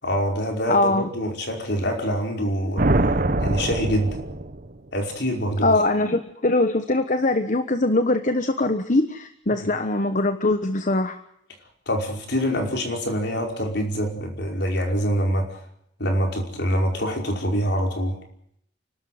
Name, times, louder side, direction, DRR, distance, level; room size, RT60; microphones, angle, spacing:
voice 1, 0.0-2.9 3.4-4.2 4.9-5.8 9.5-9.7 11.9-15.5 16.0-18.2, equal, 60° left, 3 dB, 5.2 m, -25 dB
voice 2, 0.7-1.1 5.6-11.2, left 2 dB, 40° left, 9 dB, 1.2 m, -22 dB
sound 1, 2.8-4.9, right 2 dB, 50° right, 1.3 m, -23 dB
29.5 x 12.5 x 9.5 m, 0.73 s
head